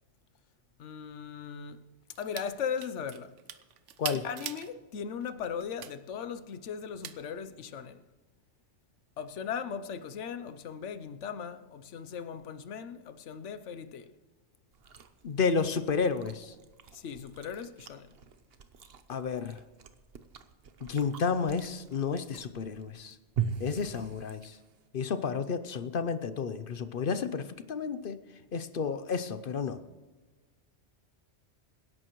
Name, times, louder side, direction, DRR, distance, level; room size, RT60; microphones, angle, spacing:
voice 1, 0.8-1.8 2.2-3.3 4.2-8.0 9.2-14.1 16.9-18.1, left 7 dB, 85° left, 1.1 m, -38 dB
sound 1, 2.1-2.5 2.8-4.7 5.2-5.9 7.0-7.2, right 9 dB, 85° right, 1.0 m, -40 dB
Chewing mastication, 14.7-24.9, right 7 dB, 60° right, 1.0 m, -42 dB
voice 2, 15.2-16.5 19.1-19.6 20.8-23.2 23.6-24.6 24.9-28.2 28.5-29.8, left 5 dB, 55° left, 0.8 m, -31 dB
25.5 x 11.0 x 3.1 m
omnidirectional pair, 1.2 m